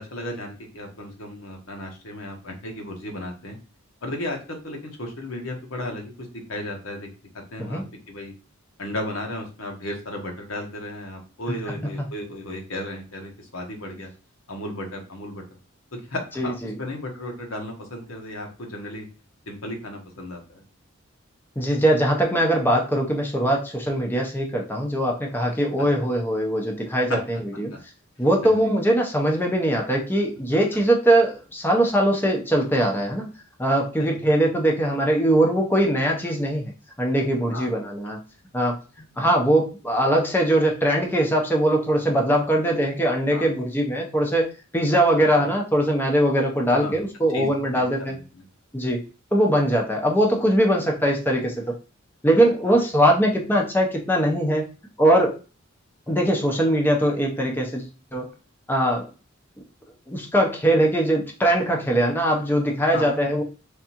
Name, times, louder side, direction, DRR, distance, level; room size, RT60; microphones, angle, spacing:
voice 1, 0.0-3.6 4.0-7.1 7.5-8.3 8.8-14.1 14.5-15.4 16.0-19.1 19.5-20.6 27.1-27.2 28.4-28.6 34.0-34.2 37.5-37.7 43.3-43.5 45.3-45.4 46.7-46.9 47.3-47.5 48.1-48.4 52.6-52.7 62.9-63.1, left 1 dB, 70° left, 2 dB, 1.1 m, -34 dB
voice 2, 11.5-11.9 16.4-16.7 21.6-27.7 28.2-33.3 33.6-36.7 37.0-38.2 38.5-48.2 48.7-49.0 49.3-51.7 52.2-54.7 55.0-55.4 56.1-58.3 58.7-59.1 60.1-63.4, right 1 dB, 10° left, 0 dB, 0.7 m, -21 dB
3.6 x 3.2 x 2.9 m, 0.34 s
head